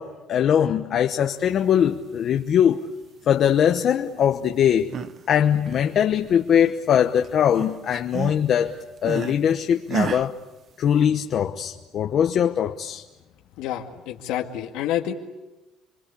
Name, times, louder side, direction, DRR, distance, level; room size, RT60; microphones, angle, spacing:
voice 1, 0.0-2.9 3.3-4.9 5.3-10.3 10.8-13.0, left 9 dB, 45° left, 1.0 m, -21 dB
sound 1, 4.6-5.2 5.5-7.0 7.2-9.4 9.9-10.3, right 7 dB, 35° right, 1.0 m, -32 dB
voice 2, 13.6-15.1, left 11 dB, 90° left, 2.2 m, -28 dB
28.5 x 23.5 x 8.5 m
cardioid pair, 160°, 0 cm